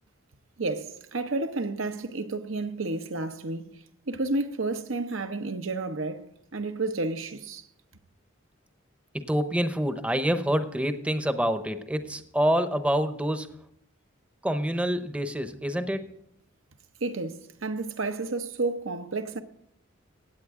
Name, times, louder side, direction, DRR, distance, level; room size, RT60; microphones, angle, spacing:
voice 1, 0.6-7.7 17.0-19.4, right 3 dB, 80° right, 1.0 m, -31 dB
voice 2, 9.1-13.5 14.4-16.0, equal, 5° right, 0.7 m, -27 dB
16.5 x 9.0 x 3.7 m
head